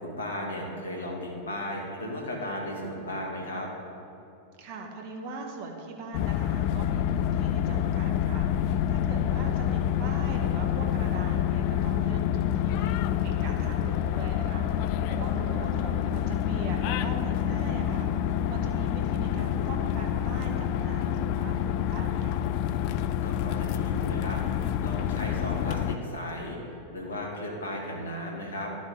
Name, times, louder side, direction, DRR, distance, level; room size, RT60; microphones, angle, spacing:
voice 1, 0.0-3.7 23.2-28.7, left 1 dB, 70° left, -1 dB, 1.7 m, -35 dB
voice 2, 4.6-22.4, right 3 dB, 45° right, 2 dB, 1.3 m, -41 dB
sound 1, 6.1-26.0, left 10 dB, 45° left, 0.3 m, -27 dB
12.5 x 6.2 x 3.7 m, 2.7 s
figure-of-eight pair, 90°, 0 cm